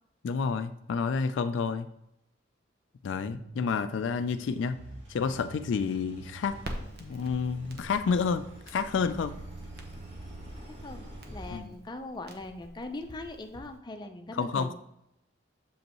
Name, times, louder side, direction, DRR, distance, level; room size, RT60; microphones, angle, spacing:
voice 1, 0.2-1.9 3.0-4.8 5.1-6.6 7.0-9.4 11.5-11.7 14.3-14.7, left 5 dB, 70° left, 11 dB, 0.3 m, -29 dB
sound 1, 3.3-4.3 4.7-6.4 6.8-8.5 8.7-11.1, right 3 dB, 80° right, 0.7 m, -49 dB
Engine, 4.0-11.6, right 1 dB, 30° right, 1.7 m, -48 dB
Crackle, 6.5-13.8, right 1 dB, 55° right, 0.8 m, -47 dB
voice 2, 10.7-14.7, left 2 dB, 25° left, 5 dB, 0.6 m, -40 dB
7.1 x 5.2 x 3.0 m, 0.79 s
head